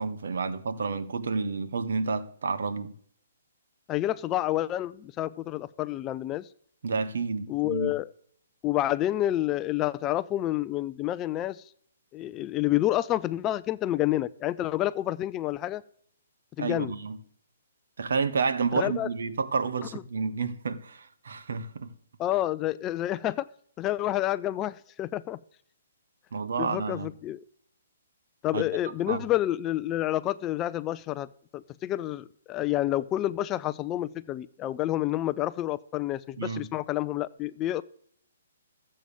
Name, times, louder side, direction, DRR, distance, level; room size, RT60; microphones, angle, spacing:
voice 1, 0.0-2.9 6.8-7.9 16.6-17.2 18.0-21.9 26.3-27.1 28.5-28.6 29.1-29.2 36.4-36.7, right 4 dB, 75° right, 1.4 m, -30 dB
voice 2, 3.9-6.5 7.5-8.1 8.6-11.6 12.1-15.8 16.6-16.9 18.7-19.1 19.9-20.0 22.2-23.5 23.8-25.4 26.6-27.4 28.4-37.8, left 14 dB, 20° left, 0.4 m, -29 dB
14.5 x 7.6 x 7.2 m
hypercardioid pair, 155°, 0 cm